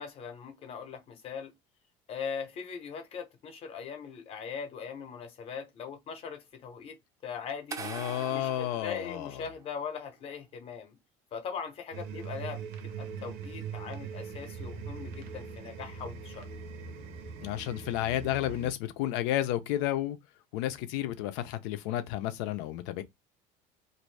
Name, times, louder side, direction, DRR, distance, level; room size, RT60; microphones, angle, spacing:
voice 1, 0.0-1.5 2.1-7.0 7.2-7.8 8.3-11.0 11.3-12.7 13.0-16.5, left 6 dB, 40° left, 0.9 m, -40 dB
sound 1, 7.7-9.8, right 5 dB, 20° right, 0.6 m, -42 dB
voice 2, 7.8-9.3 17.4-20.2 20.5-23.0, left 13 dB, 80° left, 0.6 m, -31 dB
sound 2, 11.9-18.7, right 6 dB, 60° right, 0.8 m, -41 dB
2.6 x 2.6 x 3.2 m
cardioid pair, 155°, 16 cm